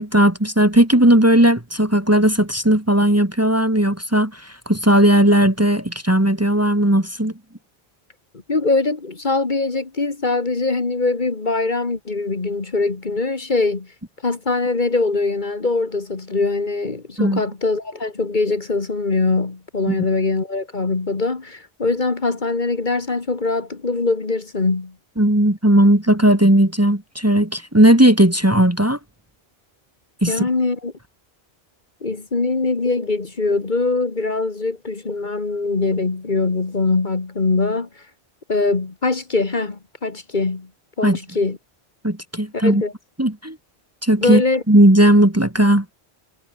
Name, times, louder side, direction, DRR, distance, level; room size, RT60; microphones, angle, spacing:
voice 1, 0.0-7.3 17.2-17.4 19.9-20.0 25.2-29.0 30.2-30.5 41.0-41.2 42.0-42.8 43.2-43.6 44.0-44.4 44.7-45.9, right 1 dB, 15° right, 1.7 m, -16 dB
voice 2, 8.5-13.9 14.2-24.9 30.3-30.9 32.0-37.9 38.5-40.7 41.0-41.6 42.5-42.9 44.2-44.6, left 3 dB, 45° left, 1.9 m, -22 dB
omnidirectional pair, 1.1 m